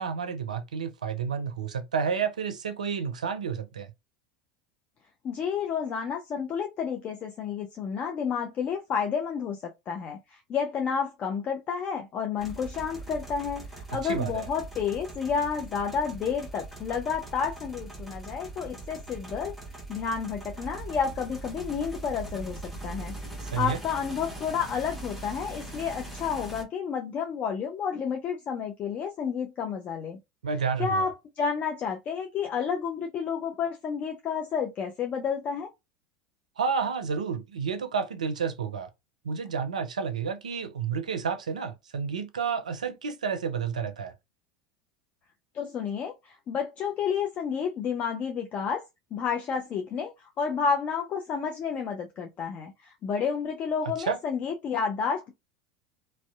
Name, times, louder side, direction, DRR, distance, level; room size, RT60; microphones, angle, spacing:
voice 1, 0.0-3.9 13.9-14.5 23.4-23.8 30.4-31.1 36.6-38.9 39.2-44.1 54.1-54.2, right 6 dB, 90° right, 0.4 m, -30 dB
voice 2, 5.2-19.5 19.9-30.2 30.8-35.7 45.5-48.8 49.1-50.1 50.4-55.3, left 6 dB, 40° left, 0.5 m, -30 dB
sound 1, 12.4-26.6, right 2 dB, ahead, 1.0 m, -41 dB
2.6 x 2.1 x 2.3 m
hypercardioid pair, 85°, 4 cm